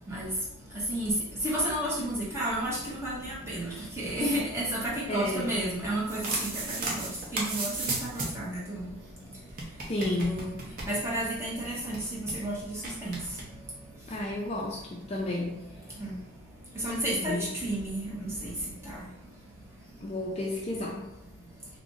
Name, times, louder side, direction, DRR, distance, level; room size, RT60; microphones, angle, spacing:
voice 1, 1.4-6.5 6.8-8.9 10.0-10.5 10.9-13.2 16.0-16.2 16.8-18.5, right 1 dB, 10° right, -6 dB, 0.8 m, -32 dB
voice 2, 5.1-5.6 9.8-10.5 14.1-15.6 17.1-17.5 20.0-21.1, left 1 dB, 30° left, -2 dB, 0.3 m, -32 dB
sound 1, 5.9-8.5 8.8-8.9 9.0-9.1 9.5-11.4 11.6-11.7 11.9-12.4 12.8-13.4, right 2 dB, 40° right, 0.6 m, -34 dB
2.5 x 2.4 x 3.7 m, 0.86 s
head